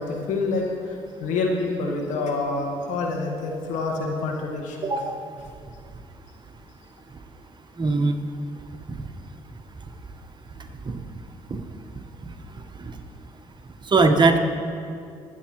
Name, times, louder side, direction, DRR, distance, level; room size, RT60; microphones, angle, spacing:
voice 1, 0.0-4.9, left 3 dB, 75° left, 1 dB, 1.7 m, -27 dB
voice 2, 4.8-5.2 7.8-8.1 8.9-9.0 10.8-10.9 11.5-11.6 12.2-12.3 12.8-12.9 13.9-14.4, right 3 dB, 35° right, 6 dB, 1.2 m, -20 dB
22.5 x 8.5 x 3.1 m, 2.4 s
hypercardioid pair, 55°, 13 cm